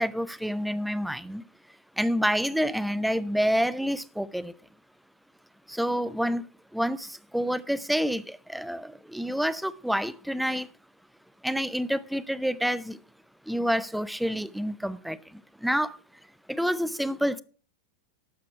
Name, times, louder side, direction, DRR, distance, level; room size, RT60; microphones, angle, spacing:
voice 1, 0.0-1.4 2.0-4.5 5.7-6.4 6.7-10.7 11.4-13.0 13.5-15.2 15.6-16.0 16.5-17.4, equal, ahead, 0.5 m, -28 dB
12.0 x 8.5 x 4.6 m
figure-of-eight pair, 90°, 0 cm